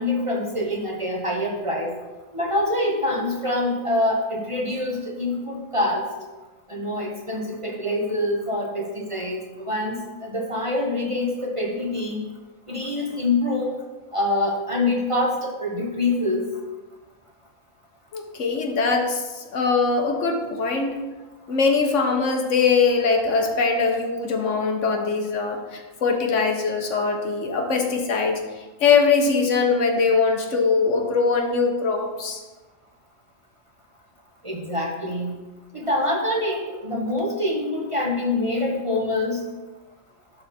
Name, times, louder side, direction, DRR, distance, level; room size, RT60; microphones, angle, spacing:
voice 1, 0.0-2.0 2.3-6.0 6.7-12.2 12.7-13.8 14.1-16.5 34.4-35.3 35.7-39.4, left 1 dB, 25° right, -1 dB, 1.0 m, -25 dB
voice 2, 18.1-21.0 21.5-28.4 28.8-32.4, left 4 dB, 70° left, 3 dB, 1.3 m, -22 dB
11.5 x 3.8 x 4.2 m, 1.2 s
omnidirectional pair, 1.3 m